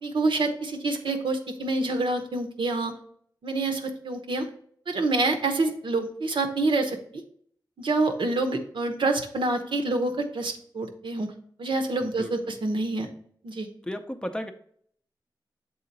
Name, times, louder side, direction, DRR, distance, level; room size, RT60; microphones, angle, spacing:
voice 1, 0.0-2.9 3.4-4.5 4.9-7.0 7.8-11.3 11.6-13.1 13.4-13.7, right 2 dB, 80° right, 5 dB, 1.0 m, -27 dB
voice 2, 12.0-12.5 13.8-14.5, equal, 10° left, 6 dB, 0.5 m, -35 dB
7.4 x 3.8 x 4.0 m, 0.62 s
wide cardioid pair, 110°, 8 cm